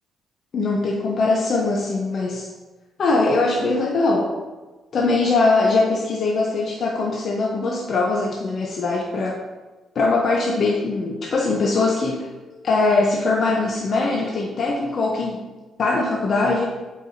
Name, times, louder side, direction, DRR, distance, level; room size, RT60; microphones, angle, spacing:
voice 1, 0.5-2.5 3.0-4.3 4.9-9.4 9.9-12.3 12.6-15.4 15.8-16.8, left 3 dB, 55° left, -1 dB, 0.8 m, -21 dB
7.9 x 4.7 x 2.7 m, 1.2 s
cardioid pair, 90°, 0 cm